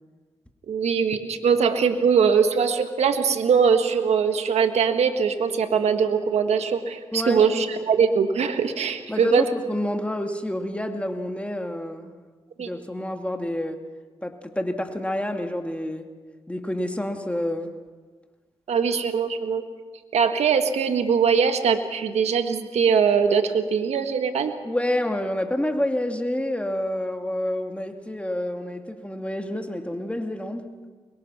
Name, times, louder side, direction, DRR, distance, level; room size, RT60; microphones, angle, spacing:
voice 1, 0.7-9.4 12.6-12.7 18.7-19.6 20.1-24.5, right 6 dB, 80° right, 7 dB, 1.5 m, -21 dB
voice 2, 7.1-7.6 9.1-12.1 12.6-13.8 14.2-16.1 16.5-17.7 24.6-30.7, left 1 dB, 10° left, 4 dB, 2.8 m, -28 dB
24.0 x 21.5 x 6.0 m, 1.4 s
supercardioid pair, 45°, 11 cm